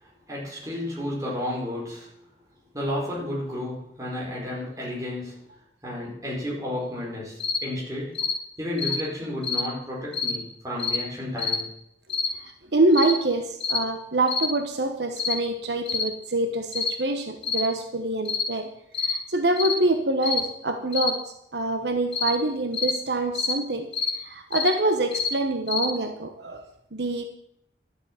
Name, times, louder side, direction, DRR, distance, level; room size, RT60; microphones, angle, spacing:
voice 1, 0.0-2.1 2.7-5.4 5.8-8.2 8.6-11.7, left 1 dB, 20° right, -4 dB, 4.7 m, -32 dB
sound 1, 7.4-7.6 8.2-8.4 8.8-9.0 9.4-9.7 10.1-10.4 10.8-11.0 11.4-11.6 12.1-12.3 12.9-13.2 13.6-13.8 14.3-14.5 15.2-15.4 15.9-16.1 16.7-16.9 17.4-17.7 18.3-18.5 18.9-19.2 19.6-19.8 20.2-20.4 20.9-21.1 22.1-22.3 22.7-22.9 23.4-23.6 23.9-24.2 24.5-24.7 25.1-25.3 25.7-25.9, left 5 dB, 30° left, 1.9 m, -26 dB
voice 2, 12.4-18.7 19.0-23.9 24.2-27.2, right 2 dB, 75° right, 6 dB, 1.1 m, -25 dB
12.0 x 7.9 x 7.6 m, 0.75 s
head